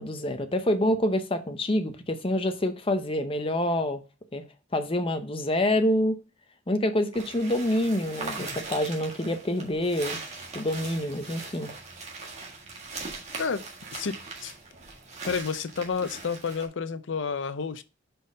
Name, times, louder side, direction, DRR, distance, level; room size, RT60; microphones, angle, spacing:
voice 1, 0.0-4.0 4.3-4.4 4.7-6.2 6.7-10.2 10.5-11.7, left 1 dB, 30° left, 0.7 m, -27 dB
sound 1, 7.1-16.7, right 3 dB, 35° right, 1.7 m, -40 dB
voice 2, 13.9-14.5 15.3-17.8, left 5 dB, 75° left, 0.6 m, -30 dB
5.3 x 4.4 x 5.0 m
head